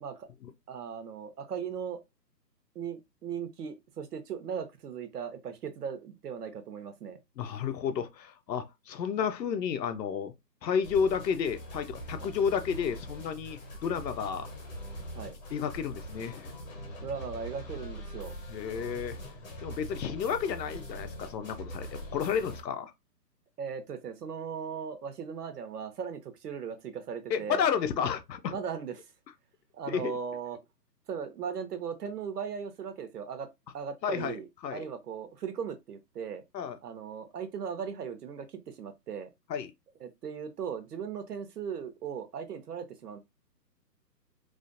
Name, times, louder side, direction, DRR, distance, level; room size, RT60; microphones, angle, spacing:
voice 1, 0.7-2.0 2.8-7.2 12.2-12.3 15.1-15.3 17.0-18.3 23.6-27.7 28.5-29.1 29.7-30.6 31.1-33.5 33.7-36.4 36.8-39.3 40.0-43.2, right 7 dB, 70° right, 0.7 m, -38 dB
voice 2, 7.4-10.3 10.6-14.5 15.5-16.5 18.5-19.2 19.6-22.9 27.3-28.6 29.9-30.2 34.0-34.4 34.6-34.8 36.5-36.8 39.5-39.7, left 7 dB, 80° left, 0.6 m, -31 dB
sound 1, 10.8-22.6, equal, 55° left, 0.8 m, -43 dB
2.5 x 2.2 x 2.5 m
hypercardioid pair, 170°, 50 cm